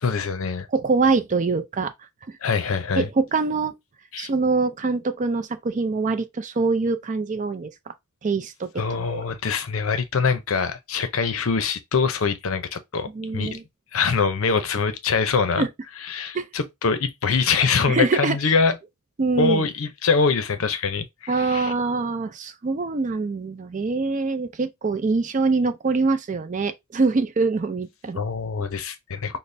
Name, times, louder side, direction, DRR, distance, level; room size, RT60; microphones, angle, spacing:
voice 1, 0.0-0.7 2.4-3.1 4.1-4.3 8.8-13.6 13.9-15.7 16.0-18.8 19.4-21.7 28.1-29.4, left 5 dB, 65° left, 0.6 m, -24 dB
voice 2, 0.7-1.9 2.3-2.4 3.0-3.7 4.2-7.7 8.2-9.2 13.1-13.6 15.6-15.7 16.3-16.4 17.9-18.4 19.2-19.7 21.3-28.2, right 4 dB, 35° right, 0.4 m, -24 dB
4.0 x 2.1 x 3.2 m
head